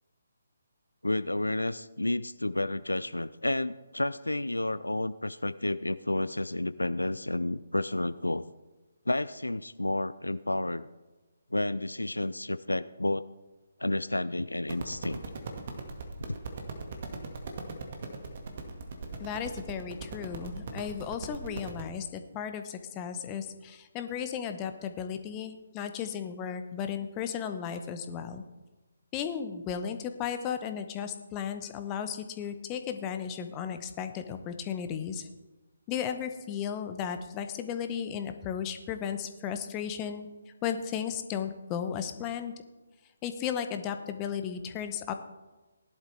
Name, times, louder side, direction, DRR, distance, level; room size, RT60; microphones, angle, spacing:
voice 1, 1.0-8.4 9.1-10.9 11.5-13.3 13.8-15.2 16.3-16.4, left 1 dB, 80° left, 15 dB, 0.4 m, -31 dB
sound 1, 14.6-21.8, right 4 dB, 40° right, 1.8 m, -39 dB
voice 2, 19.2-28.4 29.1-35.3 35.9-40.3 40.6-42.5 43.2-45.1, left 8 dB, 20° left, 8 dB, 0.9 m, -35 dB
17.0 x 11.5 x 3.4 m, 1.1 s
figure-of-eight pair, 140°, 0 cm